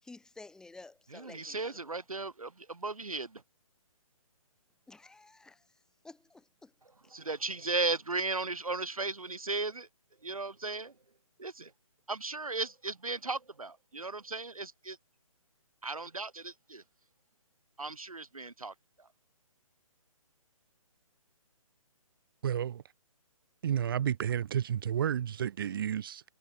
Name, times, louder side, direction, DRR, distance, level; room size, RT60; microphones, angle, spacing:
voice 1, 0.0-2.0 4.9-5.6 6.0-6.7, left 3 dB, 5° left, 4.4 m, -52 dB
voice 2, 1.1-3.4 6.8-9.9 10.2-10.9 11.4-11.7 12.1-15.0 15.8-16.8 17.8-19.1, right 3 dB, 75° right, 1.7 m, -36 dB
voice 3, 22.4-22.8 23.6-26.2, right 9 dB, 40° right, 2.1 m, -31 dB
figure-of-eight pair, 140°, 18 cm